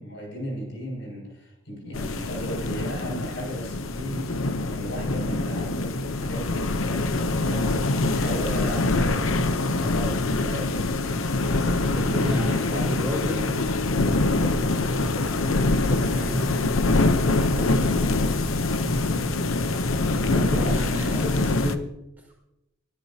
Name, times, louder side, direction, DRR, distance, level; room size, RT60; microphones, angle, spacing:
voice 1, 0.0-10.8 12.4-13.1 20.3-21.2, equal, 60° left, -1 dB, 6.8 m, -35 dB
sound 1, 1.9-21.8, left 2 dB, 90° left, 1.0 m, -24 dB
voice 2, 11.6-13.5 14.0-16.4 17.5-18.5 20.2-21.8, equal, 10° right, -3 dB, 5.8 m, -32 dB
24.5 x 13.5 x 2.9 m, 0.89 s
head